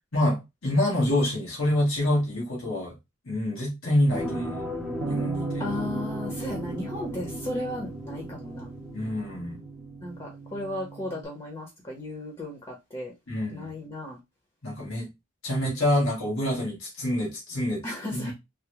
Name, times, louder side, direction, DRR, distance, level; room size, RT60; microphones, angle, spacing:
voice 1, 0.1-2.9 3.3-4.7 5.1-5.6 8.9-9.6 13.3-13.7 14.6-15.1 15.4-17.8 18.1-18.3, left 1 dB, 80° left, 1.4 m, -26 dB
sound 1, 4.1-10.2 10.6-10.7, equal, ahead, 0.7 m, -36 dB
Bass guitar, 5.0-11.3, right 5 dB, 50° right, 0.3 m, -37 dB
voice 2, 5.6-8.7 10.0-13.1 13.5-14.2 17.8-18.3, left 1 dB, 25° left, 1.0 m, -35 dB
3.5 x 2.2 x 3.0 m
head